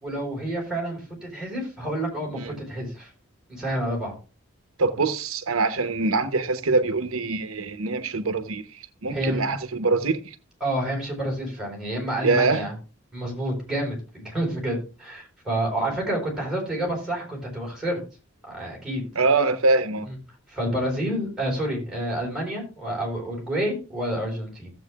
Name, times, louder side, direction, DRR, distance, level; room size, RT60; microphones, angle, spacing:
voice 1, 0.0-3.1 3.5-4.1 9.1-9.4 10.6-12.7 13.1-18.0 18.5-19.0 20.5-24.7, right 1 dB, 5° right, 4.2 m, -29 dB
voice 2, 4.8-8.6 9.0-10.3 12.2-12.7 19.2-20.1, right 3 dB, 90° right, 0.9 m, -23 dB
15.0 x 7.8 x 2.4 m
head